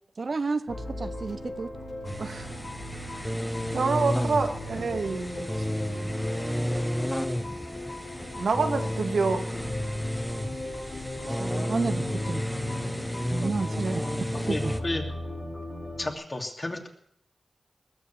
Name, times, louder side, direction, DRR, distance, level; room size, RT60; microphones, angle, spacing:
voice 1, 0.2-1.7 11.4-12.4 13.3-14.0 14.5-14.7, right 4 dB, 60° right, 11 dB, 0.7 m, -31 dB
sound 1, 0.7-16.1, left 1 dB, 80° left, 6.2 m, -38 dB
sound 2, 2.0-14.8, equal, 5° left, 1.1 m, -32 dB
voice 2, 2.2-2.5 3.7-5.5 8.4-9.4 13.7-14.0, right 4 dB, 85° right, 4 dB, 1.7 m, -27 dB
voice 3, 14.3-15.1 16.0-16.9, left 2 dB, 40° left, 2 dB, 2.9 m, -32 dB
20.5 x 6.8 x 8.8 m, 0.72 s
cardioid pair, 50°, 0 cm